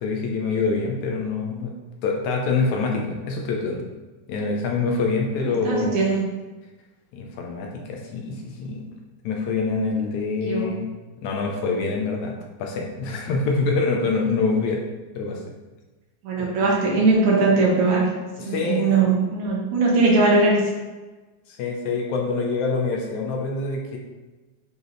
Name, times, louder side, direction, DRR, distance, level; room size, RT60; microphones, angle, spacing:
voice 1, 0.0-1.7 2.0-3.8 4.3-6.0 7.1-8.9 9.2-10.9 11.2-12.3 12.6-14.8 15.2-15.4 16.4-16.6 18.5-18.9 21.5-24.0, left 4 dB, 75° left, 0 dB, 2.1 m, -25 dB
voice 2, 5.4-6.3 10.4-10.7 16.2-18.1 18.4-20.6, right 3 dB, 70° right, -3 dB, 2.7 m, -20 dB
8.1 x 4.6 x 3.2 m, 1.2 s
omnidirectional pair, 3.6 m